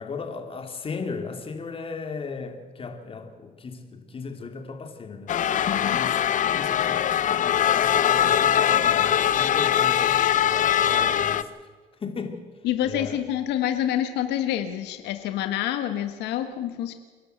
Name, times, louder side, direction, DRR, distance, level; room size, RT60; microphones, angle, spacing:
voice 1, 0.0-5.3 5.7-11.5 12.0-12.5 12.8-13.2, left 4 dB, 35° left, 6 dB, 2.9 m, -36 dB
sound 1, 5.3-11.4, left 10 dB, 50° left, 0.8 m, -22 dB
voice 2, 5.7-6.2 12.6-16.9, left 11 dB, 85° left, 8 dB, 1.3 m, -27 dB
28.5 x 11.5 x 8.0 m, 1.4 s
cardioid pair, 110°, 17 cm